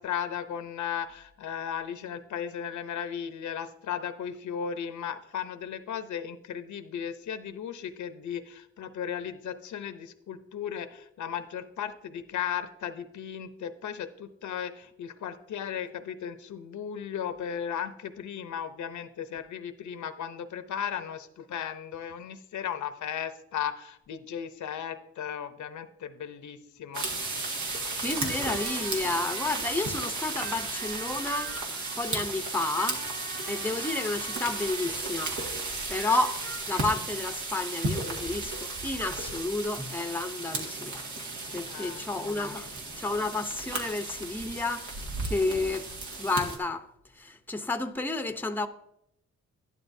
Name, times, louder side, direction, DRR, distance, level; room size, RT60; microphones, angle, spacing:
voice 1, 0.0-27.1 41.7-42.1, left 8 dB, 80° left, 0.8 m, -36 dB
sound 1, 26.9-46.6, right 2 dB, 80° right, 1.9 m, -34 dB
voice 2, 28.0-31.5 32.0-33.0 33.5-35.3 35.9-36.4 36.7-41.1 41.5-42.7 43.0-45.9 46.2-46.8 47.2-48.7, left 2 dB, 5° left, 0.6 m, -31 dB
sound 2, 28.1-30.0 30.3-35.2 35.7-36.8, right 3 dB, 60° right, 1.2 m, -44 dB
11.5 x 11.0 x 2.7 m
cardioid pair, 95°, 29 cm